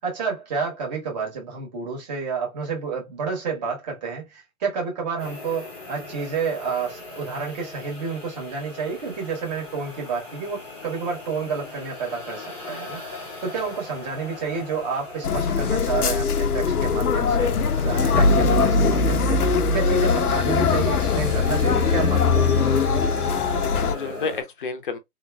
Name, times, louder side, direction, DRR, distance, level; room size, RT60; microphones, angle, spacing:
voice 1, 0.0-19.4 19.7-22.5, right 5 dB, 30° right, 1.5 m, -30 dB
sound 1, 5.2-24.4, left 2 dB, 5° left, 0.8 m, -37 dB
sound 2, 15.2-23.9, left 4 dB, 80° left, 0.6 m, -21 dB
voice 2, 23.1-25.0, left 4 dB, 35° left, 0.7 m, -31 dB
3.6 x 2.9 x 2.3 m
figure-of-eight pair, 135°, 44 cm